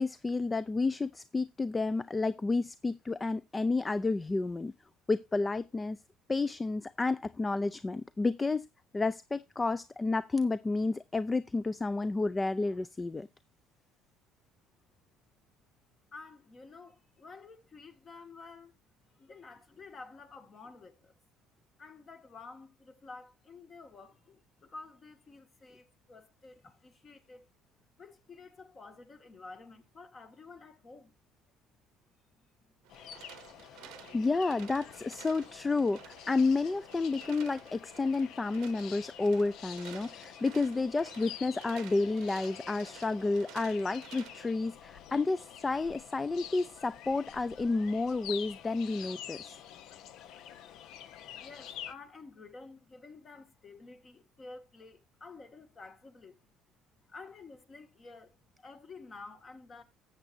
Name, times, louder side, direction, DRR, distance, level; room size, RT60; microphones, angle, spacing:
voice 1, 0.0-4.7 5.1-6.0 6.3-8.6 8.9-13.3 33.8-49.6, left 3 dB, 20° left, 0.5 m, -31 dB
voice 2, 16.1-18.8 19.0-21.2 21.8-27.5 28.0-31.1 32.4-32.8 51.4-56.5 57.1-59.8, left 3 dB, 40° left, 2.0 m, -51 dB
sound 1, 32.8-44.5, right 16 dB, 75° right, 0.8 m, -53 dB
sound 2, 32.9-51.9, left 10 dB, 70° left, 0.7 m, -48 dB
13.5 x 8.0 x 2.6 m
supercardioid pair, 75°, 0 cm